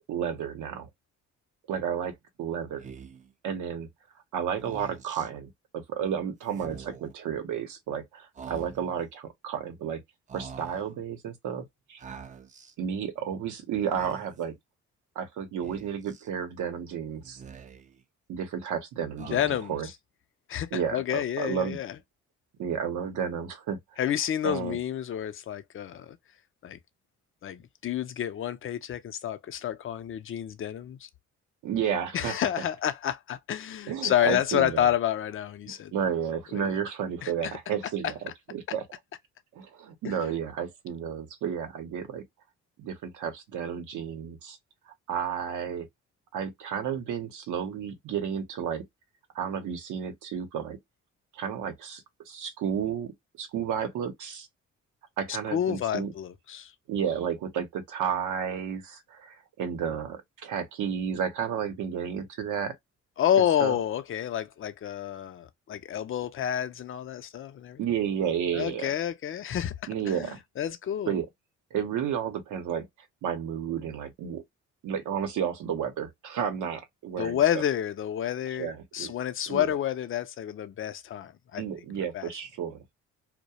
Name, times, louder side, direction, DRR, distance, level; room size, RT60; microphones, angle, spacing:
voice 1, 0.1-0.9 1.7-2.9 3.4-3.9 4.3-10.0 10.3-12.0 12.8-14.6 15.2-17.4 18.3-19.9 20.7-21.8 22.6-23.8 24.4-24.8 31.6-32.3 33.9-34.9 35.7-38.8 39.5-42.2 42.8-44.6 45.1-45.9 46.3-48.8 49.3-50.8 51.3-54.5 55.2-56.1 56.9-62.7 63.6-63.8 67.8-68.9 69.9-70.4 71.1-71.3 71.7-72.9 73.2-74.4 74.8-77.6 78.5-79.1 79.5-79.7 81.6-82.8, right 8 dB, 80° right, 0.8 m, -32 dB
Speech, 2.8-3.3 4.5-5.3 6.5-7.1 8.3-9.0 10.3-10.9 12.0-12.7 13.8-14.4 15.6-16.3 17.2-18.0 19.2-19.9, right 6 dB, 25° right, 0.4 m, -45 dB
voice 2, 19.2-19.7 20.5-21.9 24.0-26.2 26.6-26.8 27.4-31.1 32.1-35.9 36.5-36.7 37.2-37.5 38.0-38.1 40.0-40.3 55.5-56.7 63.2-67.8 68.5-69.7 70.1-71.2 77.2-81.6 82.1-82.3, left 10 dB, 45° left, 0.5 m, -29 dB
2.3 x 2.1 x 2.8 m
cardioid pair, 90°, 30 cm